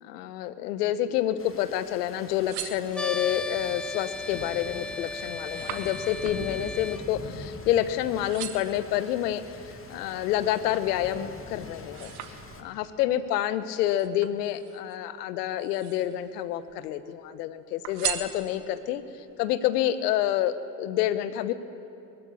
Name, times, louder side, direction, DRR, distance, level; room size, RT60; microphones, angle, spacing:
voice 1, 0.0-9.4 9.9-12.1 12.6-19.0 19.4-21.5, left 12 dB, 75° left, 13 dB, 1.2 m, -28 dB
Rain, 1.4-12.6, left 3 dB, 25° left, 2.6 m, -44 dB
sound 1, 2.1-3.4 4.0-4.4 4.8-7.9 8.2-8.9 9.5-11.0 11.4-12.9 13.8-15.0 15.5-16.3 16.6-17.4 17.8-18.9 19.4-19.5, right 12 dB, 70° right, 1.7 m, -39 dB
sound 2, 2.9-7.0, left 2 dB, ahead, 0.7 m, -36 dB
20.5 x 15.5 x 9.9 m, 2.8 s
hypercardioid pair, 65°, 47 cm